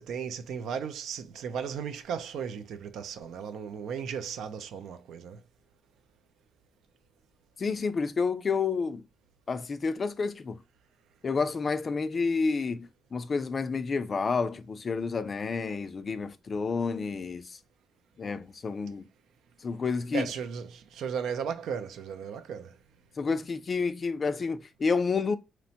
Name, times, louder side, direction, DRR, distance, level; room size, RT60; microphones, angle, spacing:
voice 1, 0.0-5.4 20.1-22.7, right 7 dB, 75° right, 0.4 m, -35 dB
voice 2, 7.6-9.0 9.5-10.6 11.2-17.6 18.2-19.0 19.6-20.3 23.2-25.4, left 4 dB, 40° left, 0.3 m, -30 dB
2.9 x 2.1 x 2.7 m
cardioid pair, 90°, 0 cm